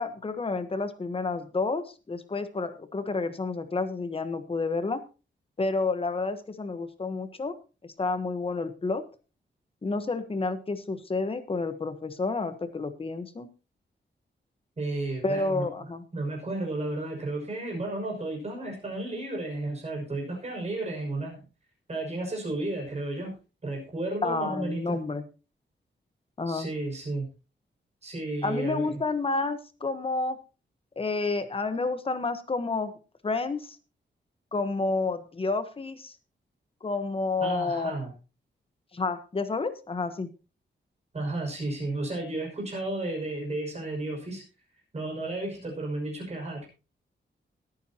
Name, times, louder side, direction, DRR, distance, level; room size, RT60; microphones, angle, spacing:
voice 1, 0.0-5.0 5.6-7.5 8.0-9.0 9.8-13.5 15.2-16.0 24.2-25.2 26.4-26.7 28.4-30.4 31.0-32.9 33.2-33.8 34.5-36.1 36.8-37.9 38.9-40.3, left 3 dB, 30° left, 10 dB, 1.2 m, -30 dB
voice 2, 14.8-15.7 16.1-21.5 21.9-23.3 23.6-25.0 26.5-27.3 28.0-29.0 37.4-38.1 41.1-44.4 44.9-46.7, right 2 dB, 35° right, 0 dB, 6.1 m, -33 dB
20.5 x 9.2 x 2.9 m, 0.32 s
wide cardioid pair, 175°, 19 cm